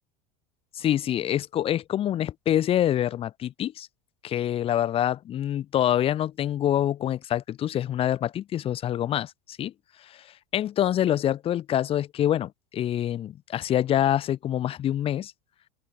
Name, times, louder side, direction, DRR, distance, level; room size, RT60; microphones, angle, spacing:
voice 1, 0.8-3.9 4.2-9.3 9.6-9.7 10.5-15.3, left 11 dB, 30° left, 1.3 m, -26 dB
open air
supercardioid pair, 145°, 19 cm